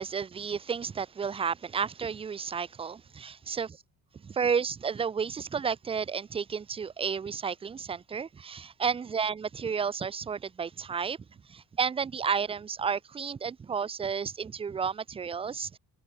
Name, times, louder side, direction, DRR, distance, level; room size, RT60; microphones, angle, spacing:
voice 1, 0.0-3.7 4.2-11.2 11.5-15.8, right 6 dB, 20° right, 0.4 m, -32 dB
cardioid pair, 100°, 29 cm